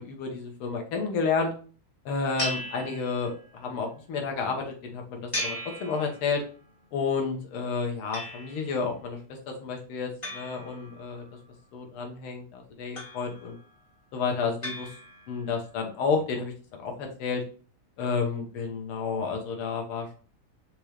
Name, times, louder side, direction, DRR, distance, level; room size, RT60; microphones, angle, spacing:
voice 1, 0.0-1.5 2.1-6.4 6.9-9.2 9.5-11.2 11.7-13.6 14.1-14.9 15.3-17.4 18.0-20.1, left 5 dB, 80° left, 3 dB, 1.9 m, -31 dB
sound 1, 2.4-3.6 5.3-6.6 8.1-8.8 10.2-11.4 13.0-13.7 14.6-15.5, equal, 30° left, 0.6 m, -37 dB
5.2 x 3.0 x 3.2 m, 0.39 s
omnidirectional pair, 2.4 m